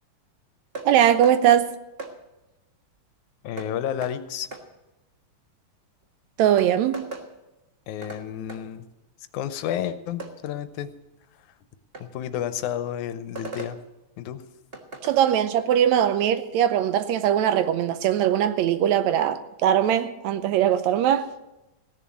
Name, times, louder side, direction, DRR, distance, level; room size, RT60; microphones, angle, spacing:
sound 1, 0.7-0.9 1.2-1.4 2.0-2.1 3.6-3.7 4.0-4.1 4.5-4.6 6.0-6.1 6.6-7.3 8.0-8.2 8.5-8.6 10.2-10.3 11.9-12.1 13.3-13.7 14.7-15.2, right 3 dB, 40° right, 0.8 m, -37 dB
voice 1, 0.9-1.7 6.4-7.0 15.0-21.3, right 10 dB, 80° right, 1.9 m, -21 dB
voice 2, 3.4-4.5 7.9-8.9 9.3-10.9 12.0-13.8 14.2-14.4, left 10 dB, 90° left, 2.2 m, -31 dB
16.5 x 7.1 x 8.9 m
omnidirectional pair, 3.4 m